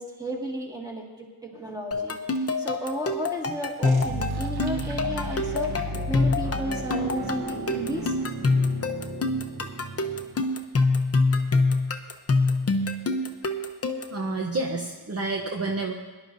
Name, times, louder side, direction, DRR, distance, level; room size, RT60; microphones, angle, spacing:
voice 1, 0.0-2.2 2.6-5.7 6.1-8.2, equal, 10° right, -1 dB, 1.9 m, -33 dB
sound 1, 1.9-14.2, left 3 dB, 35° left, 0.8 m, -26 dB
sound 2, 3.8-10.4, right 1 dB, 65° right, 1.3 m, -34 dB
voice 2, 14.1-15.9, right 3 dB, 35° right, 1 dB, 0.8 m, -29 dB
22.5 x 11.5 x 2.7 m, 1.3 s
wide cardioid pair, 165°, 41 cm